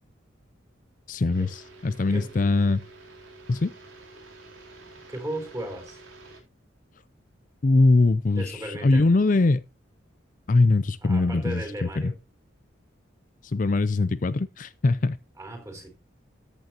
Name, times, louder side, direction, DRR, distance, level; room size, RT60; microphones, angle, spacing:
voice 1, 1.1-2.8 3.5-3.7 7.6-9.6 10.5-12.1 13.4-15.2, left 3 dB, 40° left, 0.5 m, -22 dB
sound 1, 1.3-6.4, right 2 dB, 90° right, 4.3 m, -49 dB
voice 2, 5.1-6.0 8.3-9.2 11.0-12.2 15.4-15.9, right 1 dB, 15° right, 4.1 m, -36 dB
14.0 x 9.3 x 2.9 m
head